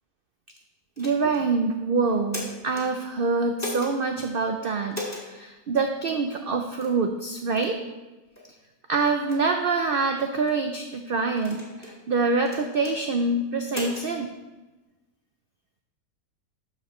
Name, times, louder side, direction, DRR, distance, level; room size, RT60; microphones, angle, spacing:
sound 1, 1.0-1.4 2.1-2.9 3.6-3.9 4.9-5.3 6.1-6.2 6.8-7.0 7.6-7.8 8.4-8.5 9.1-9.4 10.2-10.6 11.4-12.0 12.5-13.0 13.7-14.1, left 1 dB, 10° left, 1.7 m, -37 dB
voice 1, 1.0-7.8 8.9-14.3, right 4 dB, 70° right, 5 dB, 0.5 m, -25 dB
12.5 x 4.9 x 3.1 m, 1.1 s
omnidirectional pair, 1.6 m